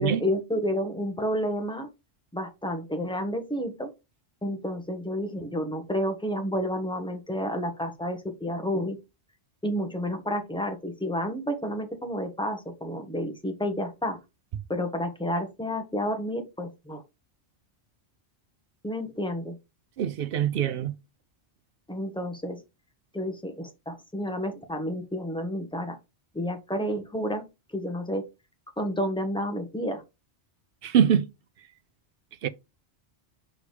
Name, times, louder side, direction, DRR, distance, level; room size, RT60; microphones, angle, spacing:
voice 1, 0.0-1.9 2.3-3.9 4.4-9.0 9.6-14.2 14.7-17.0 18.8-19.6 21.9-22.6 23.1-26.0 26.3-27.4 27.7-28.2 28.8-30.0, equal, 5° left, 1.1 m, -30 dB
voice 2, 20.0-20.9 30.8-31.2 32.4-32.5, right 9 dB, 60° right, 0.7 m, -23 dB
6.4 x 4.9 x 3.4 m
omnidirectional pair, 1.2 m